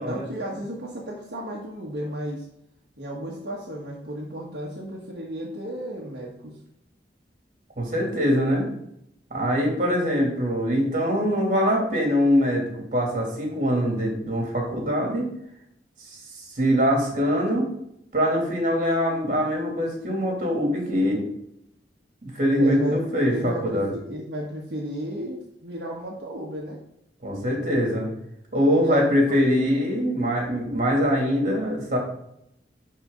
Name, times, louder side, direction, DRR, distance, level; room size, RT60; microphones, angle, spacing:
voice 1, 0.0-2.4 3.0-6.6 22.6-23.0 23.3-26.8 28.8-29.4, equal, 70° right, -3 dB, 1.5 m, -33 dB
voice 2, 7.8-8.7 9.3-15.3 16.1-16.2 16.6-17.7 18.1-21.2 22.2-23.9 27.2-28.1 28.5-32.0, equal, 45° right, -1 dB, 2.9 m, -23 dB
11.0 x 4.4 x 3.9 m, 0.76 s
head